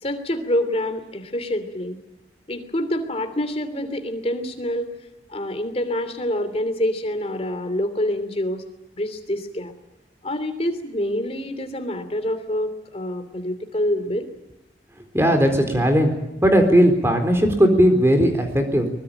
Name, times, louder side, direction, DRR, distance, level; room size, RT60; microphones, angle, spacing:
voice 1, 0.0-2.0 2.5-4.9 5.3-8.6 8.9-9.7 10.2-14.3, left 1 dB, 35° left, 9 dB, 3.0 m, -26 dB
voice 2, 15.1-16.1 16.4-18.9, equal, 15° right, 5 dB, 3.9 m, -17 dB
23.0 x 21.5 x 9.0 m, 0.94 s
head